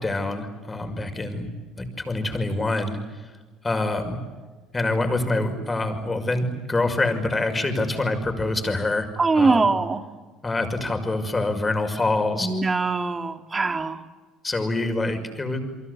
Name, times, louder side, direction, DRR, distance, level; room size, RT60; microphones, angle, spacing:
voice 1, 0.0-1.5 1.8-3.3 3.6-4.2 4.7-9.1 9.3-9.7 10.4-12.5 14.4-15.6, left 2 dB, 20° left, 6 dB, 5.9 m, -25 dB
voice 2, 9.2-10.0 12.4-14.0, right 3 dB, 25° right, 7 dB, 2.7 m, -22 dB
29.5 x 23.5 x 8.3 m, 1.3 s
hypercardioid pair, 70°, 0 cm